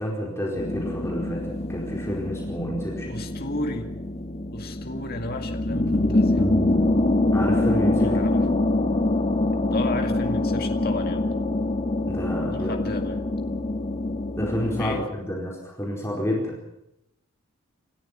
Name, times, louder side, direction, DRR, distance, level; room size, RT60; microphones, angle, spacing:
voice 1, 0.0-3.1 7.3-8.1 12.1-12.7 14.4-16.6, equal, 10° left, -2 dB, 4.6 m, -29 dB
sound 1, 0.6-15.0, left 2 dB, 30° left, 2.0 m, -25 dB
voice 2, 3.1-3.9 4.5-6.4 8.0-8.5 9.7-11.3 12.5-13.2 14.8-15.1, left 2 dB, 45° left, 4 dB, 2.2 m, -33 dB
sound 2, 6.4-8.2, right 1 dB, 5° right, 1.8 m, -35 dB
28.0 x 14.0 x 7.5 m, 0.84 s
head